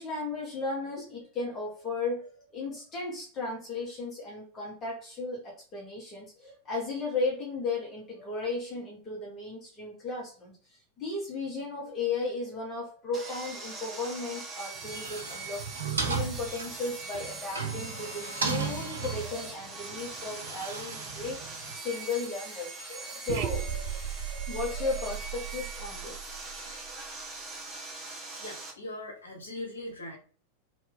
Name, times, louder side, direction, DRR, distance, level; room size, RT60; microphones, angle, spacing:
voice 1, 0.0-15.6 16.0-26.4, left 3 dB, 25° left, -2 dB, 1.0 m, -35 dB
Sawing, 13.1-28.7, right 3 dB, 20° right, 1.0 m, -42 dB
sound 1, 14.8-21.8, right 5 dB, 70° right, 0.7 m, -36 dB
sound 2, 23.3-27.4, right 9 dB, 50° right, 0.4 m, -36 dB
voice 2, 28.4-30.2, left 1 dB, 70° left, 1 dB, 1.2 m, -40 dB
2.8 x 2.6 x 3.6 m, 0.41 s
figure-of-eight pair, 90°, 0 cm